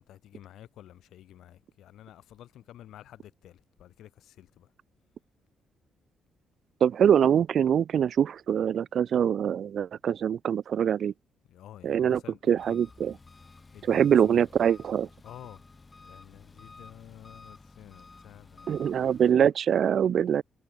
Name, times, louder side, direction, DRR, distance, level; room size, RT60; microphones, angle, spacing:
voice 1, 0.0-4.7 11.5-12.8 13.7-14.4 15.2-15.6 16.0-19.1, left 12 dB, 80° left, 3.6 m, -50 dB
voice 2, 6.8-11.1 11.8-12.2 12.5-13.1 13.9-15.1 18.7-20.4, right 8 dB, 60° right, 0.3 m, -24 dB
Engine, 12.6-19.3, left 3 dB, 25° left, 3.0 m, -52 dB
cardioid pair, 90°, 0 cm